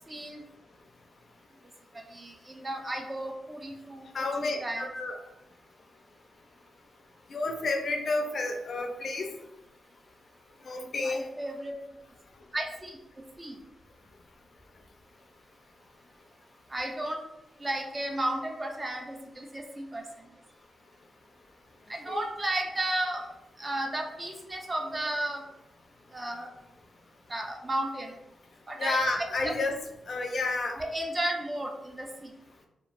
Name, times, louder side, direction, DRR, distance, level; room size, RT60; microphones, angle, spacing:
voice 1, 0.1-0.4 1.9-4.9 11.0-11.8 12.5-13.0 13.4-13.6 16.7-17.2 17.6-20.0 21.9-23.3 23.6-25.4 26.1-26.5 27.3-28.1 28.7-29.5 30.8-32.3, right 1 dB, 25° right, 2 dB, 0.4 m, -33 dB
voice 2, 4.1-5.2 7.3-9.3 10.7-11.2 22.1-22.3 28.8-29.8 30.1-30.7, left 2 dB, 55° left, 3 dB, 0.4 m, -30 dB
2.9 x 2.2 x 2.5 m, 0.87 s
cardioid pair, 95°, 0 cm